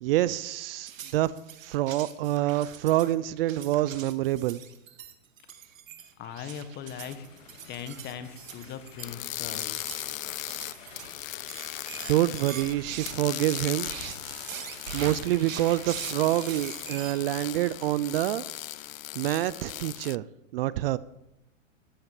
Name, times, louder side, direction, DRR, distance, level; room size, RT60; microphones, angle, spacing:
voice 1, 0.0-1.3 1.6-4.6 12.1-13.9 14.9-18.4 19.2-20.3 20.5-21.0, right 15 dB, 45° right, 18 dB, 0.6 m, -26 dB
sound 1, 0.9-17.2, right 8 dB, 80° right, 2.4 m, -42 dB
sound 2, 6.2-17.0, left 7 dB, 70° left, 3.3 m, -51 dB
voice 2, 6.2-7.3 7.7-9.8, left 8 dB, 25° left, 11 dB, 1.5 m, -40 dB
sound 3, 9.0-12.7 13.0-20.2, left 15 dB, 90° left, 0.5 m, -38 dB
14.5 x 12.0 x 7.2 m, 0.85 s
hypercardioid pair, 140°, 39 cm